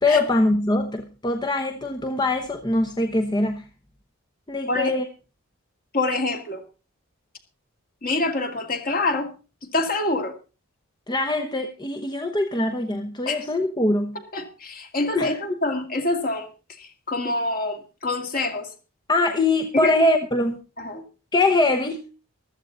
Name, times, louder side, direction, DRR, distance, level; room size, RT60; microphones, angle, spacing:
voice 1, 0.0-3.6 4.5-5.0 11.1-14.2 15.1-15.4 19.1-20.6 21.3-22.0, left 2 dB, 20° left, 4 dB, 1.0 m, -22 dB
voice 2, 5.9-6.6 8.0-9.3 9.7-10.3 13.3-13.5 14.3-16.5 16.8-18.7 19.7-19.9 20.8-21.0, left 2 dB, 40° left, 5 dB, 2.4 m, -26 dB
15.0 x 13.0 x 4.0 m, 0.33 s
head